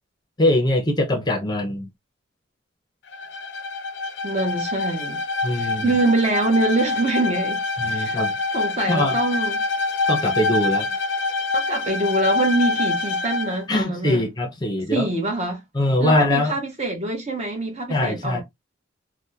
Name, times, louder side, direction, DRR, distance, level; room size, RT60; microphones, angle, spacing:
voice 1, 0.4-1.9 5.4-5.9 7.8-8.3 8.9-9.2 10.1-10.9 13.7-15.1 15.7-16.5 17.9-18.4, left 1 dB, 20° left, 0.6 m, -22 dB
Bowed string instrument, 3.1-13.6, left 3 dB, 65° left, 0.5 m, -25 dB
voice 2, 4.2-5.2 5.5-8.2 8.5-9.6 11.5-14.3 14.9-15.6 16.0-18.4, right 2 dB, 35° right, 0.9 m, -24 dB
3.4 x 2.1 x 2.7 m
head